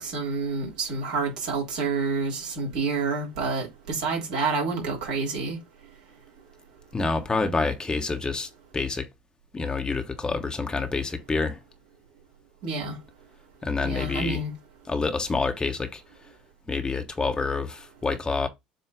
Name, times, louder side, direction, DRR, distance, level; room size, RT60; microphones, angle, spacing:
voice 1, 0.0-5.6 12.6-13.0 13.8-14.5, right 4 dB, 70° right, 3.2 m, -28 dB
voice 2, 6.9-9.1 9.5-11.6 13.6-14.4 14.9-16.0 16.7-18.5, left 4 dB, 20° left, 1.3 m, -27 dB
7.7 x 2.7 x 5.0 m
figure-of-eight pair, 65°, 4 cm